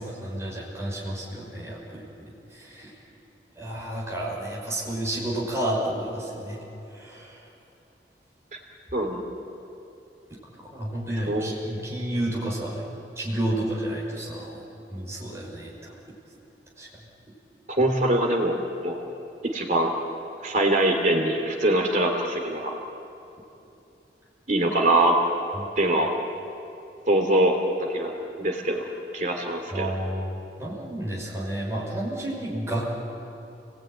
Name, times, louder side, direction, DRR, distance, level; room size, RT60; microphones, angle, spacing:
voice 1, 0.0-2.1 2.5-2.9 3.6-6.6 6.9-7.3 10.6-12.8 13.2-14.6 14.9-15.9 16.8-16.9 25.5-25.7 29.7-30.3 30.6-32.9, right 1 dB, 15° right, -4 dB, 5.9 m, -31 dB
voice 2, 8.9-9.2 11.3-11.5 17.7-18.5 18.8-19.0 19.5-19.9 20.4-22.7 24.5-25.1 25.8-26.1 27.1-27.6 27.9-28.1 28.4-28.8 29.1-29.9, right 1 dB, 45° right, 2 dB, 3.1 m, -23 dB
29.5 x 20.0 x 9.5 m, 2.8 s
head